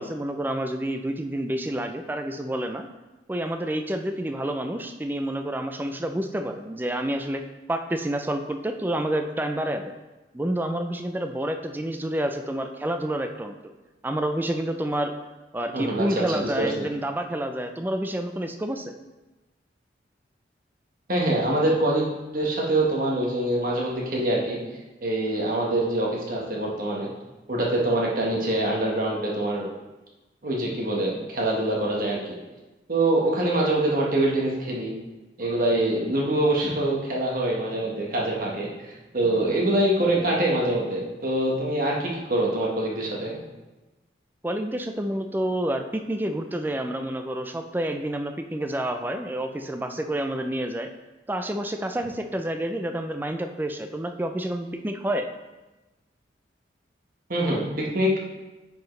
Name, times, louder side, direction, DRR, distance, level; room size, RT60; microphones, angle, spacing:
voice 1, 0.0-2.9 3.3-7.4 7.7-9.9 10.3-13.6 14.0-15.1 15.5-18.9 44.4-50.9 51.3-55.3, right 1 dB, 10° right, 6 dB, 0.4 m, -29 dB
voice 2, 15.7-16.7 21.1-24.6 25.0-27.1 27.5-29.7 30.4-32.4 32.9-34.9 35.4-43.4 57.3-58.2, right 1 dB, 50° right, -3 dB, 1.3 m, -24 dB
9.2 x 4.6 x 3.2 m, 1.1 s
head